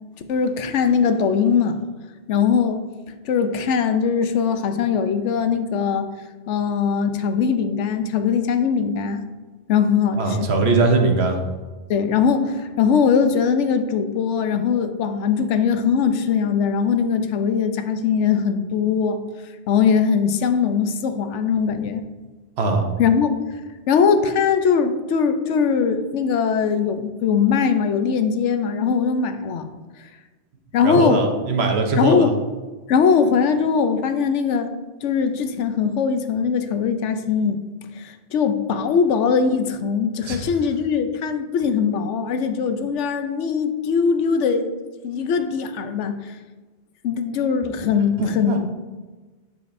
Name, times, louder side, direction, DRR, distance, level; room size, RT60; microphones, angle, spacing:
voice 1, 0.3-1.8 2.3-2.8 3.2-6.1 6.5-9.2 9.7-10.5 11.9-19.2 19.7-22.0 23.0-23.4 23.9-29.7 30.7-31.2 32.0-32.3 32.9-34.7 35.0-37.6 38.0-44.7 45.0-46.4 47.0-48.7, left 6 dB, 80° left, 8 dB, 0.9 m, -21 dB
voice 2, 10.2-11.4 22.6-22.8 30.8-32.3 40.3-40.5 48.2-48.6, right 3 dB, 65° right, 3 dB, 1.1 m, -20 dB
7.8 x 6.8 x 2.6 m, 1.3 s
omnidirectional pair, 1.2 m